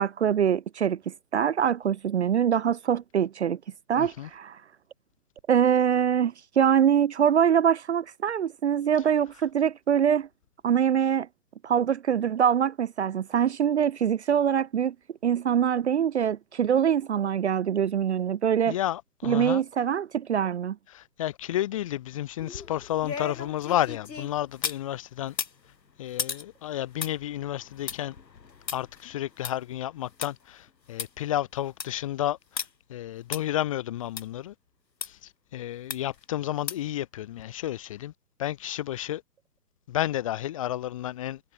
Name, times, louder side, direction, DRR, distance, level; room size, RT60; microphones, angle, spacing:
voice 1, 0.0-3.6 3.9-4.6 5.5-10.3 10.6-11.3 11.6-14.9 15.2-18.8 19.2-20.8, right 8 dB, 45° right, 0.7 m, -24 dB
voice 2, 4.0-4.3 18.7-19.6 20.9-25.3 26.0-28.2 28.7-32.6 32.9-34.5 35.1-35.2 35.5-38.1 38.4-39.2 39.9-41.4, left 13 dB, 20° left, 0.8 m, -31 dB
sound 1, 22.4-24.9 25.3-30.3 30.7-30.8 31.0-31.1 31.5-32.0 32.6-32.7 33.3-33.4 34.2-34.3 35.0-35.1 35.9-36.2 36.7-37.0 37.4-37.5, left 6 dB, 90° left, 1.9 m, -36 dB
hypercardioid pair, 145°, 49 cm